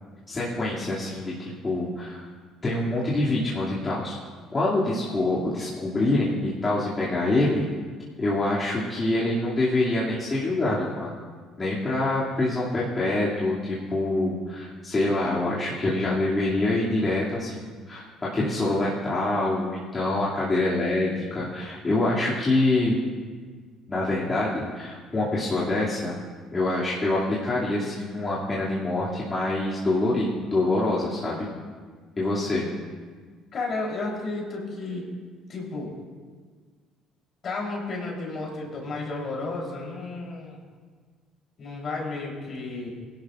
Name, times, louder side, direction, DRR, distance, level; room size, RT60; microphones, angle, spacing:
voice 1, 0.3-2.3 2.6-4.2 4.5-7.6 8.2-11.1 11.6-23.0 23.9-26.1 26.5-31.5 32.2-32.7, left 2 dB, 30° left, -8 dB, 2.6 m, -25 dB
voice 2, 33.5-35.1 35.5-35.9 37.4-40.6 41.6-42.9, left 3 dB, 50° left, -2 dB, 3.9 m, -32 dB
18.0 x 11.5 x 2.5 m, 1.6 s
supercardioid pair, 70°, 0 cm